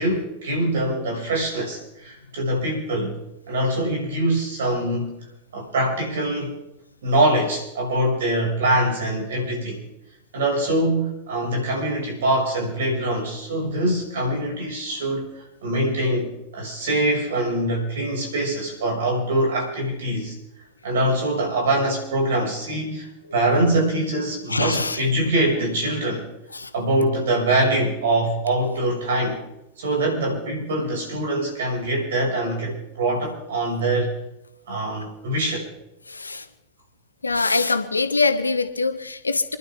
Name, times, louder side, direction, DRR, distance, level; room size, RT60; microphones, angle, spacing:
voice 1, 0.0-3.1 3.5-5.1 5.5-6.5 7.0-9.8 10.3-20.3 20.8-26.3 26.7-29.4 29.8-34.2 34.7-35.7, right 1 dB, 65° right, 0 dB, 6.2 m, -23 dB
voice 2, 24.5-25.0 26.5-26.7 36.1-36.4 37.2-39.6, left 3 dB, 85° left, 9 dB, 1.2 m, -23 dB
28.0 x 11.5 x 3.7 m, 0.87 s
figure-of-eight pair, 85°, 0 cm